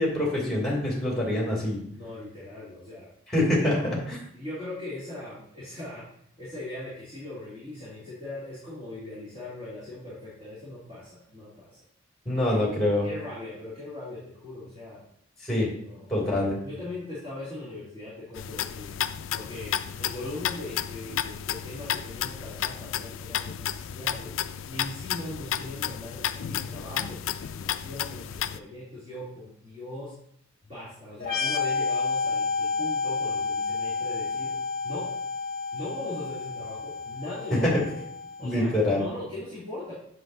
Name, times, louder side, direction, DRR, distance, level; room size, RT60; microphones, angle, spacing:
voice 1, 0.0-1.8 3.3-3.8 4.1-4.2 12.2-13.1 15.4-15.7 16.1-16.6 38.4-39.0, left 1 dB, ahead, -5 dB, 2.7 m, -25 dB
voice 2, 1.9-3.1 3.7-4.0 4.4-6.0 6.4-11.8 12.3-12.6 13.0-15.0 15.8-18.9 19.3-24.4 24.7-30.1 30.6-34.5 34.8-35.1 35.7-37.7 38.4-39.9, left 2 dB, 30° right, -10 dB, 2.6 m, -40 dB
sound 1, 18.4-28.6, left 10 dB, 65° left, 0.3 m, -32 dB
sound 2, 31.2-38.7, left 4 dB, 45° left, 0.8 m, -30 dB
7.8 x 7.2 x 2.7 m, 0.70 s
head